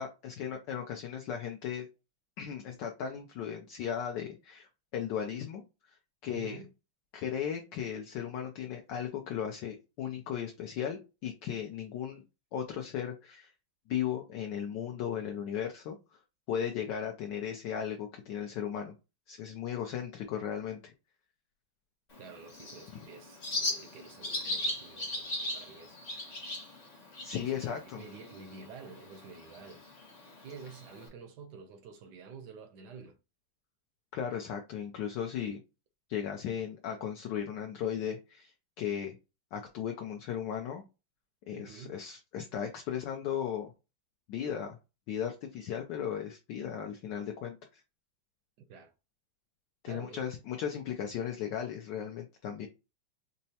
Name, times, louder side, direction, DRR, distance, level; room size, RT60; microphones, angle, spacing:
voice 1, 0.0-1.9 2.4-5.6 5.9-6.6 7.1-12.2 12.5-13.5 13.9-16.0 16.5-18.9 19.3-20.9 27.2-28.0 34.1-35.6 36.1-39.2 39.5-40.8 41.5-43.7 44.3-44.8 45.1-47.8 49.8-52.7, left 8 dB, 75° left, 1.0 m, -36 dB
voice 2, 6.3-6.7 22.2-26.4 27.4-29.8 30.4-33.2 41.5-42.0 48.7-48.9 49.9-50.5, right 5 dB, 70° right, 1.0 m, -49 dB
Bird, 22.1-31.1, left 1 dB, 60° left, 0.4 m, -39 dB
5.4 x 2.0 x 2.7 m
omnidirectional pair, 2.3 m